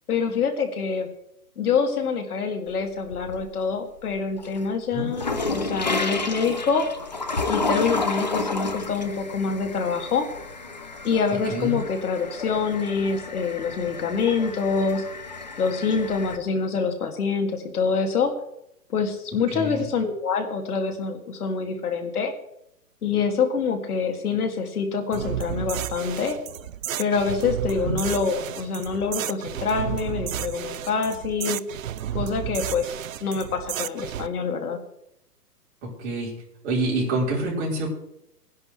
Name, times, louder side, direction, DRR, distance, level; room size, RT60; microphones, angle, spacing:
voice 1, 0.1-1.1 1.6-6.9 7.5-10.3 11.0-15.0 15.6-18.3 18.9-22.3 23.0-26.4 27.0-31.6 32.1-32.9 33.2-34.8, left 5 dB, 65° left, 5 dB, 2.5 m, -26 dB
sound 1, 2.7-3.6 4.0-16.4, left 3 dB, 30° left, 0.4 m, -31 dB
voice 2, 19.5-19.8 27.8-27.9 35.8-36.3 36.6-37.9, right 2 dB, 25° right, -5 dB, 4.6 m, -26 dB
sound 2, 25.1-34.3, right 11 dB, 55° right, 0.6 m, -32 dB
19.5 x 11.0 x 3.3 m, 0.78 s
hypercardioid pair, 160°, 47 cm